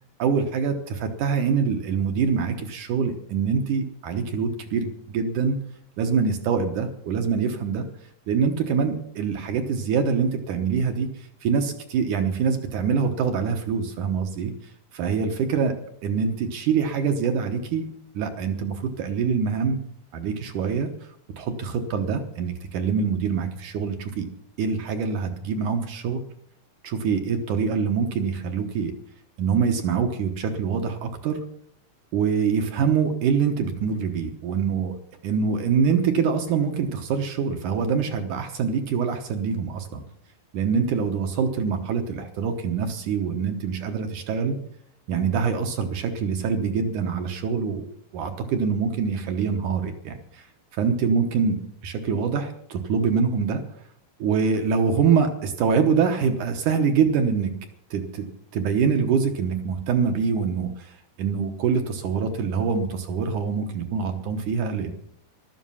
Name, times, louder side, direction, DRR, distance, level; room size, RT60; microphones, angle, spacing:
voice 1, 0.2-5.6 6.0-7.8 8.3-14.5 14.9-15.8 16.0-17.9 18.1-19.8 20.1-20.9 21.4-24.3 24.6-26.2 26.8-28.9 29.4-31.4 32.1-35.0 35.2-40.0 40.5-44.6 45.1-50.4 50.7-53.6 54.2-57.5 57.9-64.9, right 6 dB, 65° right, 6 dB, 2.2 m, -25 dB
15.0 x 12.5 x 5.6 m, 0.66 s
omnidirectional pair, 4.6 m